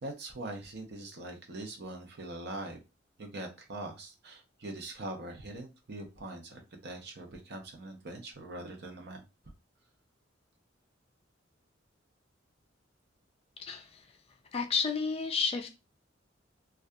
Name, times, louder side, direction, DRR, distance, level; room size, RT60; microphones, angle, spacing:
voice 1, 0.0-2.8 3.2-9.2, right 2 dB, 60° right, 3 dB, 0.6 m, -42 dB
voice 2, 13.6-14.1 14.5-15.7, left 5 dB, 30° left, 5 dB, 0.3 m, -31 dB
2.7 x 2.3 x 2.2 m, 0.27 s
head